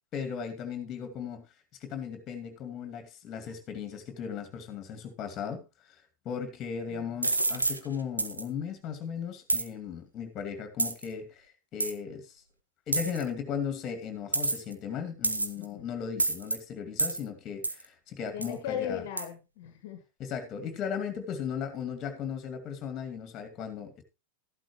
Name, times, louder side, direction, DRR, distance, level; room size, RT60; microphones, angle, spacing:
voice 1, 0.1-1.5 1.8-12.4 12.9-19.0 20.2-24.0, left 7 dB, 30° left, 2.4 m, -37 dB
voice 2, 6.9-7.2 15.6-15.9 18.3-20.0, left 10 dB, 50° left, 1.6 m, -37 dB
sound 1, 7.2-7.8 8.2-8.4 9.5-9.7 10.8-11.0 11.8-11.9 12.9-13.2 14.3-14.7 15.2-15.6 16.2-16.6 17.0-17.2 17.6-17.8 18.4-18.5 19.2-19.3, right 2 dB, 80° right, 1.0 m, -28 dB
13.5 x 11.5 x 3.1 m
figure-of-eight pair, 90°, 0 cm